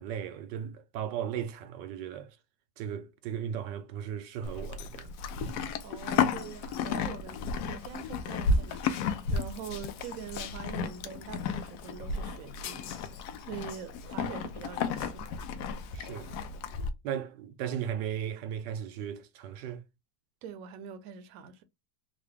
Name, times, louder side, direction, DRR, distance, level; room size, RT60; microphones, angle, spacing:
voice 1, 0.0-2.3 2.8-5.1 5.4-5.7 15.9-16.3 17.0-19.8, right 9 dB, 85° right, 1.3 m, -36 dB
Livestock farm animals working animals, 4.4-16.9, left 5 dB, 75° left, 1.1 m, -33 dB
voice 2, 5.5-15.3 20.4-21.6, right 7 dB, 65° right, 1.0 m, -44 dB
3.9 x 2.1 x 3.3 m
omnidirectional pair, 1.9 m